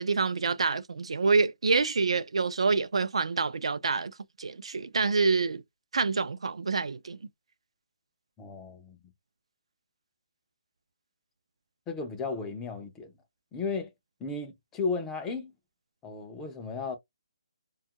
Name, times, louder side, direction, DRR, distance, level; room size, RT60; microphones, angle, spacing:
voice 1, 0.0-4.1 4.4-5.6 5.9-7.2, right 4 dB, 85° right, 0.4 m, -27 dB
voice 2, 8.4-9.0 11.9-13.1 13.5-13.9 14.2-15.5 16.0-17.0, left 4 dB, 10° left, 0.3 m, -34 dB
2.7 x 2.3 x 2.7 m
hypercardioid pair, 175°, 3 cm